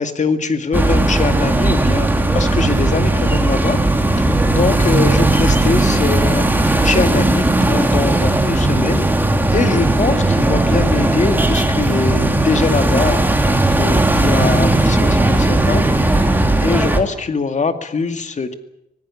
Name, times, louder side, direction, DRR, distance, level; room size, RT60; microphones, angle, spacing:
voice 1, 0.0-3.8 4.2-9.1 9.5-18.5, left 4 dB, 45° left, 8 dB, 2.2 m, -22 dB
sound 1, 0.7-17.0, right 2 dB, 10° right, 2.8 m, -16 dB
25.5 x 18.0 x 8.4 m, 0.82 s
cardioid pair, 100°, 17 cm